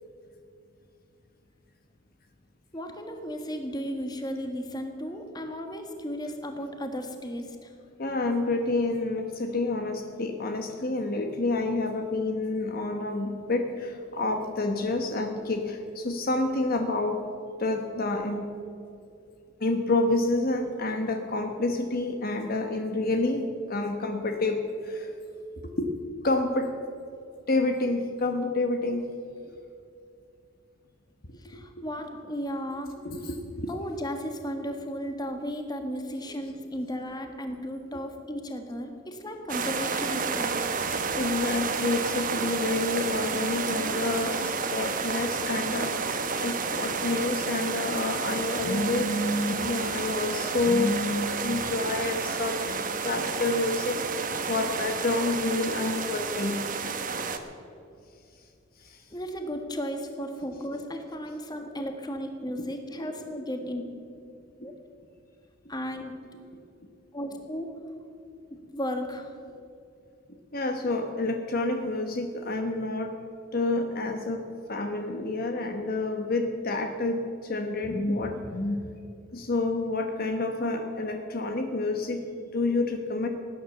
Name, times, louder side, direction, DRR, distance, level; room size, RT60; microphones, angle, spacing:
voice 1, 2.7-7.7 31.4-32.9 33.7-40.6 59.1-63.9 64.6-64.8 65.7-66.1 67.1-67.7 68.5-69.3 75.0-75.1, equal, 20° left, 5 dB, 1.6 m, -35 dB
voice 2, 8.0-17.2 17.6-18.5 19.6-25.1 25.6-26.7 27.5-29.1 29.4-29.5 31.3-31.6 33.0-33.7 36.3-36.4 37.9-38.0 41.2-56.6 58.8-59.0 62.9-63.1 64.6-64.7 70.5-73.2 73.5-78.8 79.3-83.3, left 2 dB, 50° left, 5 dB, 1.1 m, -29 dB
sound 1, 39.5-57.4, right 5 dB, 40° right, 1.1 m, -31 dB
18.0 x 10.0 x 7.0 m, 2.5 s
head